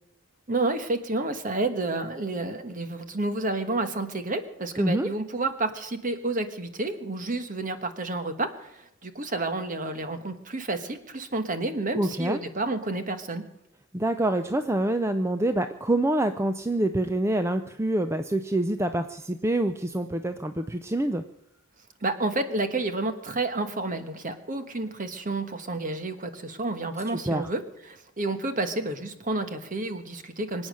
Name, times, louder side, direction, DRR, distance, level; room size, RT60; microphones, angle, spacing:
voice 1, 0.5-13.4 22.0-30.7, right 2 dB, 35° right, 8 dB, 1.3 m, -30 dB
voice 2, 4.8-5.1 11.9-12.4 13.9-21.2 27.1-27.5, right 1 dB, 10° right, 8 dB, 0.5 m, -26 dB
24.5 x 8.8 x 6.4 m, 0.82 s
head